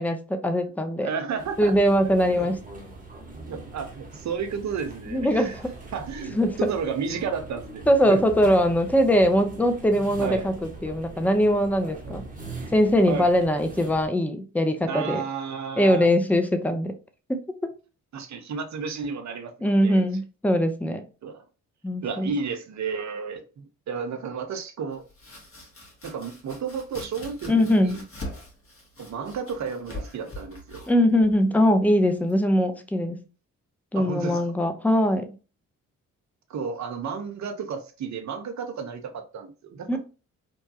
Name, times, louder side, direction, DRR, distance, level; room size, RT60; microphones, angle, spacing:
voice 1, 0.0-1.1 1.6-2.5 5.1-5.7 6.3-6.7 7.9-10.5 10.8-12.2 12.7-15.2 15.8-16.9 17.3-17.7 19.6-21.0 21.8-22.3 27.5-28.0 30.9-33.2 33.9-35.3 39.9-40.0, equal, 5° left, 0.5 m, -21 dB
voice 2, 1.0-1.7 2.3-2.5 3.3-5.6 5.9-7.8 8.1-8.2 10.2-10.5 12.0-12.2 13.1-13.3 14.9-16.1 18.1-20.0 21.2-21.4 22.0-25.0 26.0-28.0 29.0-30.8 33.9-34.4 36.5-40.0, right 6 dB, 50° right, 0.7 m, -32 dB
sound 1, 1.4-14.1, right 3 dB, 20° right, 1.0 m, -42 dB
Domestic sounds home sounds, 24.9-32.6, left 1 dB, 35° left, 1.3 m, -43 dB
3.0 x 2.2 x 2.7 m
hypercardioid pair, 45°, 37 cm